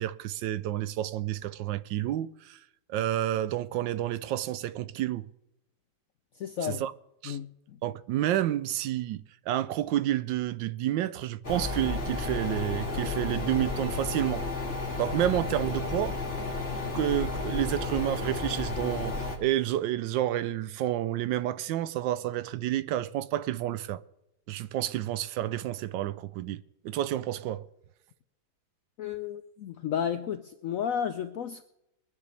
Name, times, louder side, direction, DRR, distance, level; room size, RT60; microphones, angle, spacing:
voice 1, 0.0-2.6 2.9-5.3 6.6-6.9 7.2-7.4 7.8-14.5 15.0-16.2 16.9-24.0 24.5-27.6, right 13 dB, 80° right, 1.3 m, -30 dB
voice 2, 6.3-6.8 7.2-7.8 29.0-31.6, left 8 dB, 75° left, 0.7 m, -33 dB
sound 1, 11.4-19.4, left 3 dB, 35° left, 2.4 m, -32 dB
22.5 x 9.7 x 3.3 m
omnidirectional pair, 2.0 m